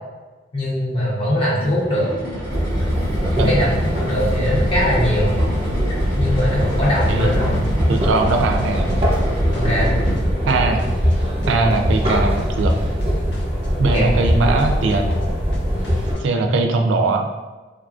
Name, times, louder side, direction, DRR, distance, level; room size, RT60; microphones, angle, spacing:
voice 1, 0.5-2.1 3.3-3.8 4.1-5.3 6.1-7.5 9.5-10.0 13.9-14.2 16.4-16.5, left 1 dB, 30° left, -7 dB, 0.9 m, -21 dB
sound 1, 1.8-10.9, right 1 dB, 80° left, 1.2 m, -29 dB
sound 2, 2.4-16.1, equal, 30° right, 0.8 m, -21 dB
sound 3, 6.4-8.6 8.9-11.1 11.4-11.8 12.1-13.7 13.9-14.3 14.6-16.2, left 1 dB, 65° left, 0.4 m, -37 dB
voice 2, 7.1-8.9 10.4-10.9 11.5-12.7 13.8-15.2 16.2-17.3, right 3 dB, 85° right, 4 dB, 0.3 m, -20 dB
3.5 x 2.3 x 2.4 m, 1.3 s
head